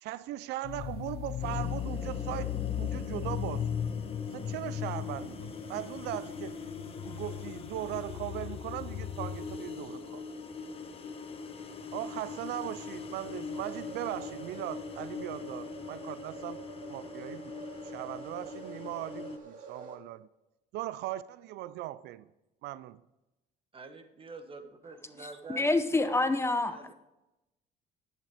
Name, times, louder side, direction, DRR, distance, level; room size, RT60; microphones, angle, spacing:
voice 1, 0.0-3.7 4.3-6.6 6.9-10.2 11.9-16.6 16.9-17.5 17.9-20.3 20.7-22.3 22.6-23.0, right 15 dB, 85° right, 0.4 m, -39 dB
sound 1, 0.6-9.6, left 10 dB, 65° left, 0.7 m, -37 dB
sound 2, 1.4-19.4, left 5 dB, 35° left, 1.2 m, -42 dB
sound 3, 13.5-20.0, right 5 dB, 50° right, 2.2 m, -47 dB
voice 2, 23.7-26.2 26.7-26.9, right 3 dB, 30° right, 1.4 m, -47 dB
voice 3, 25.5-26.9, left 2 dB, 15° left, 0.7 m, -27 dB
10.5 x 8.8 x 4.9 m
cardioid pair, 110°, 17 cm